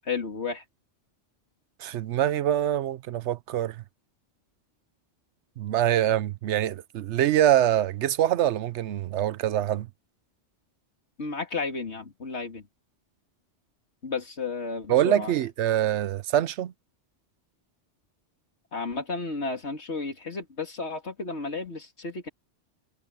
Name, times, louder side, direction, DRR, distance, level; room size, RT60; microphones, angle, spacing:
voice 1, 0.0-0.6 11.2-12.7 14.0-15.3 18.7-22.3, left 4 dB, 65° left, 2.9 m, -33 dB
voice 2, 1.8-3.8 5.6-9.9 14.9-16.7, right 11 dB, 70° right, 0.9 m, -24 dB
omnidirectional pair, 1.2 m